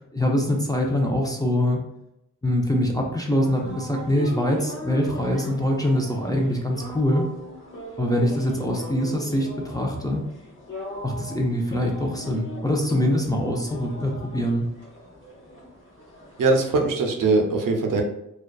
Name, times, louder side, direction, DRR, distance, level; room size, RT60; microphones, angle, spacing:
voice 1, 0.1-1.8 2.4-7.3 8.0-10.2 11.0-14.7, left 1 dB, 10° left, 0 dB, 0.4 m, -24 dB
sound 1, 3.3-16.8, left 1 dB, 40° left, 0.8 m, -39 dB
voice 2, 16.4-18.0, right 3 dB, 80° right, 2 dB, 0.5 m, -21 dB
2.5 x 2.2 x 2.2 m, 0.82 s
wide cardioid pair, 80°, 32 cm